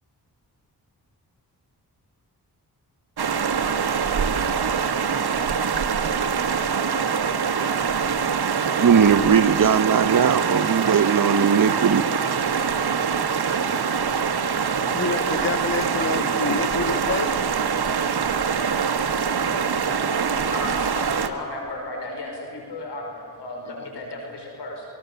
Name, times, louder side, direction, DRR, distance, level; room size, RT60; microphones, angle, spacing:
sound 1, 3.2-21.3, right 6 dB, 70° right, 1.5 m, -24 dB
voice 1, 8.8-12.0, right 7 dB, 55° right, 12 dB, 1.1 m, -19 dB
voice 2, 14.9-17.5 23.7-23.8, left 4 dB, 40° left, 10 dB, 1.7 m, -28 dB
voice 3, 20.5-24.9, left 2 dB, 85° left, 1 dB, 5.3 m, -34 dB
24.0 x 23.5 x 6.9 m, 2.3 s
cardioid pair, 50°, 40 cm